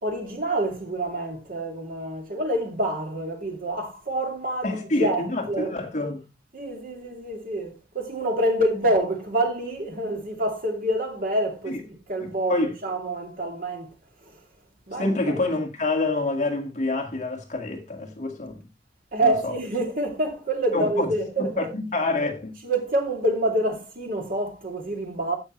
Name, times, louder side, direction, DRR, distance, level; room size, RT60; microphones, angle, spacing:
voice 1, 0.0-5.7 6.5-11.8 12.1-13.9 14.2-14.4 14.9-15.4 19.1-21.7 22.6-25.4, right 1 dB, 50° right, 2.7 m, -27 dB
voice 2, 4.6-6.3 11.7-11.8 12.2-12.8 15.0-18.7 19.2-19.5 20.7-21.1 21.4-22.6, left 2 dB, 40° left, 2.0 m, -27 dB
16.0 x 5.6 x 3.2 m
head